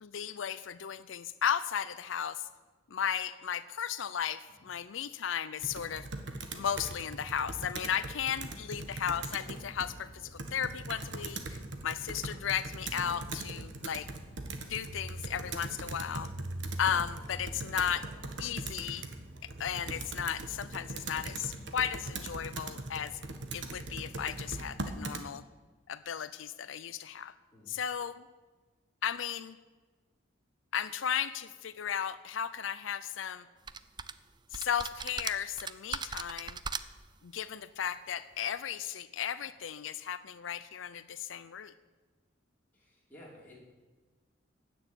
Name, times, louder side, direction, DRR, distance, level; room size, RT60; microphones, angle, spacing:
voice 1, 0.0-2.5 2.9-6.1 6.5-14.1 14.7-16.3 16.8-18.0 18.4-19.1 19.6-23.2 23.5-25.4 25.9-27.3 27.7-28.2 29.0-29.6 30.7-33.5 34.5-36.6 37.2-41.7, left 8 dB, 85° left, 13 dB, 0.5 m, -35 dB
Computer keyboard, 5.6-25.3, right 2 dB, 65° right, 1.5 m, -41 dB
voice 2, 8.2-8.7 17.6-18.2 27.5-27.8 42.7-43.6, left 1 dB, 10° left, -6 dB, 5.4 m, -55 dB
sound 1, 33.7-34.1 34.5-37.1, right 5 dB, 25° right, 0.5 m, -38 dB
16.0 x 7.1 x 10.0 m, 1.3 s
head